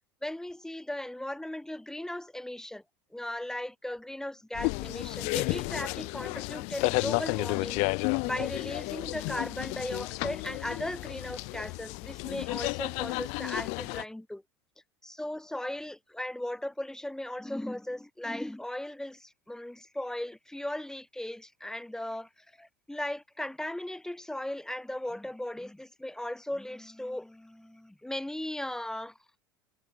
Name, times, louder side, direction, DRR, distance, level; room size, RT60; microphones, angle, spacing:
voice 1, 0.2-2.8 3.1-7.8 8.2-14.4 15.0-29.2, left 1 dB, 5° left, 0.8 m, -37 dB
sound 1, 4.5-14.0, left 33 dB, 60° left, 1.5 m, -32 dB
hypercardioid pair, 80°, 13 cm